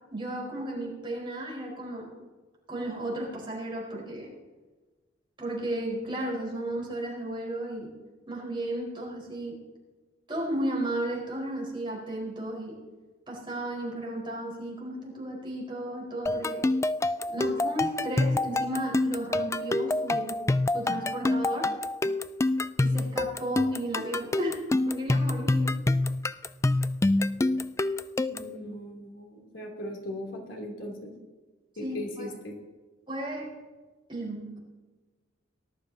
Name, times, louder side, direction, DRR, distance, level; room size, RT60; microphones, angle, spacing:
voice 1, 0.1-2.2 2.7-4.3 5.4-7.9 8.3-9.6 10.3-12.8 13.3-16.6 17.3-20.4 20.7-21.7 22.8-25.7 31.8-32.3 33.1-33.5 34.1-34.6, right 1 dB, 25° right, -4 dB, 4.7 m, -34 dB
sound 1, 16.3-28.6, left 2 dB, 15° left, 0.3 m, -27 dB
voice 2, 28.3-31.1 31.8-32.6, equal, 85° left, -1 dB, 3.1 m, -38 dB
19.0 x 12.5 x 2.9 m, 1.3 s
head